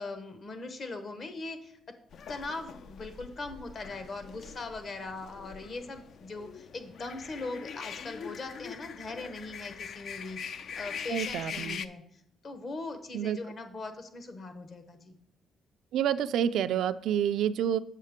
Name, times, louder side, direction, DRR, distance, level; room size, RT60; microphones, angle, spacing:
voice 1, 0.0-1.8 2.3-15.2, left 3 dB, 50° left, 8 dB, 1.0 m, -40 dB
sound 1, 2.1-11.9, left 7 dB, 65° left, 0.4 m, -42 dB
voice 2, 11.1-11.8 13.1-13.4 15.9-17.8, right 9 dB, 80° right, 12 dB, 0.3 m, -28 dB
7.4 x 6.4 x 3.6 m, 0.71 s
cardioid pair, 90°, 0 cm